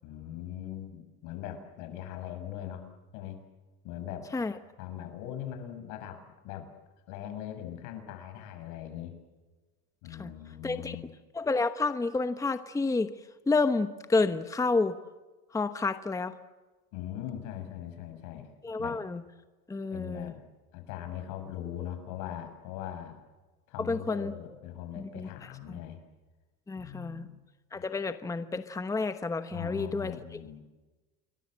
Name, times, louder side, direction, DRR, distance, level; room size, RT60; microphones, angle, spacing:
voice 1, 0.0-2.8 3.1-3.4 3.8-4.3 4.8-6.7 7.1-9.1 10.0-11.1 16.9-18.5 18.8-19.0 19.9-20.4 20.7-23.2 23.7-26.0 26.8-27.4 27.7-27.8 29.5-30.6, left 11 dB, 70° left, 7 dB, 6.8 m, -40 dB
voice 2, 10.6-11.0 11.3-13.1 13.5-15.0 15.5-16.3 18.6-19.2 19.7-20.3 23.8-24.3 25.0-25.3 25.7-25.8 26.7-27.3 27.7-30.4, left 3 dB, 10° left, 10 dB, 1.1 m, -30 dB
28.5 x 22.5 x 7.6 m, 1.2 s
cardioid pair, 135°, 32 cm